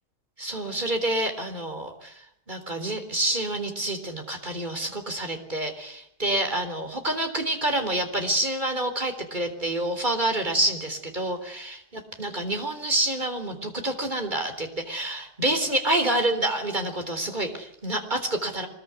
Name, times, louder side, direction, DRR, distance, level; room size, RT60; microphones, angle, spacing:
voice 1, 0.4-2.2 2.5-11.7 12.2-18.7, right 1 dB, 30° right, 6 dB, 4.1 m, -27 dB
24.0 x 21.5 x 9.7 m, 0.74 s
omnidirectional pair, 1.7 m